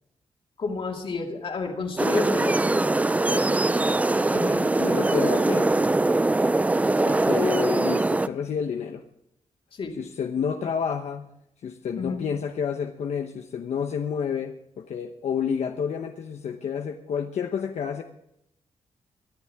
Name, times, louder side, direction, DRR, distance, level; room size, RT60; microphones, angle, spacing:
voice 1, 0.6-2.7 4.3-4.7 9.7-10.0 12.0-12.2, left 4 dB, 50° left, 2 dB, 2.7 m, -30 dB
sound 1, 2.0-8.3, right 2 dB, 10° right, 0.4 m, -22 dB
voice 2, 4.8-5.8 7.0-9.0 10.0-11.3 11.6-18.0, left 7 dB, 75° left, 4 dB, 1.0 m, -29 dB
23.5 x 11.5 x 3.6 m, 0.80 s
wide cardioid pair, 140°, 11 cm